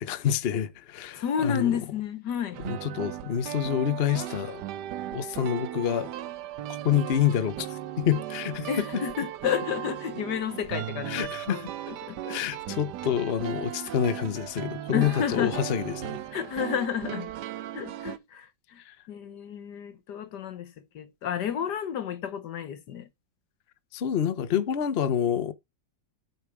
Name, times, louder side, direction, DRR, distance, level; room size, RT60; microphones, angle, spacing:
voice 1, 0.0-1.8 2.6-4.6 5.1-6.1 6.8-8.7 8.9-9.0 11.1-11.6 12.3-16.2 18.8-19.0 23.9-25.5, left 9 dB, 50° left, 0.7 m, -27 dB
voice 2, 1.2-2.6 8.7-11.6 11.9-12.4 12.6-12.8 14.9-15.6 16.3-17.3 17.7-18.5 18.7-18.8 19.1-23.1, left 8 dB, 70° left, 1.6 m, -31 dB
sound 1, 2.5-18.2, right 12 dB, 70° right, 1.2 m, -37 dB
8.6 x 5.7 x 4.5 m
omnidirectional pair, 2.0 m